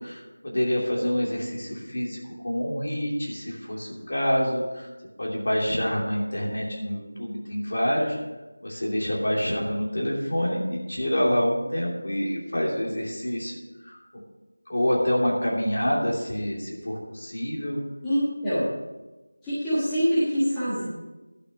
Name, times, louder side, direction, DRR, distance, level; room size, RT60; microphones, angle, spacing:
voice 1, 0.0-2.2 2.4-4.9 5.2-8.2 8.6-13.5 13.8-14.0 14.7-17.8, equal, 45° left, -3 dB, 2.9 m, -27 dB
voice 2, 18.0-18.7 19.4-20.8, equal, 5° left, -16 dB, 1.4 m, -24 dB
11.5 x 6.7 x 6.6 m, 1.1 s
figure-of-eight pair, 180°, 0 cm